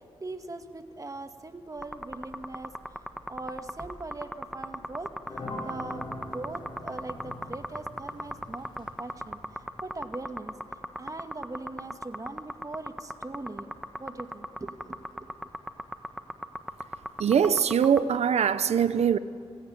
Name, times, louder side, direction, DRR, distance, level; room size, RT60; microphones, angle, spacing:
voice 1, 0.2-5.1 5.7-6.1 6.3-9.4 9.8-10.5 11.0-13.7 14.0-15.3, right 2 dB, 30° right, 2.0 m, -40 dB
sound 1, 1.7-18.0, equal, ahead, 1.4 m, -37 dB
sound 2, 5.2-9.9, left 1 dB, 45° left, 7.1 m, -42 dB
voice 2, 17.2-19.2, right 8 dB, 75° right, 0.8 m, -22 dB
27.0 x 17.0 x 9.4 m
cardioid pair, 70°, 11 cm